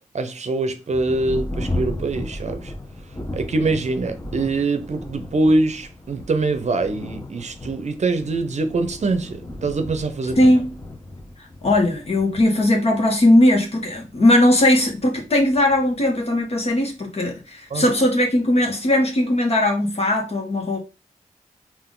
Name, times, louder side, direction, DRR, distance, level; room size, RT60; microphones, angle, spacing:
voice 1, 0.1-2.7 3.3-10.5 17.7-17.9, right 3 dB, 55° right, 0.7 m, -23 dB
Thunder, 0.9-17.0 17.7-17.8 18.4-18.8, left 1 dB, 20° left, 0.9 m, -35 dB
voice 2, 10.4-10.7 11.4-20.8, left 1 dB, 50° left, 1.3 m, -18 dB
3.7 x 2.5 x 3.7 m
cardioid pair, 50°, 14 cm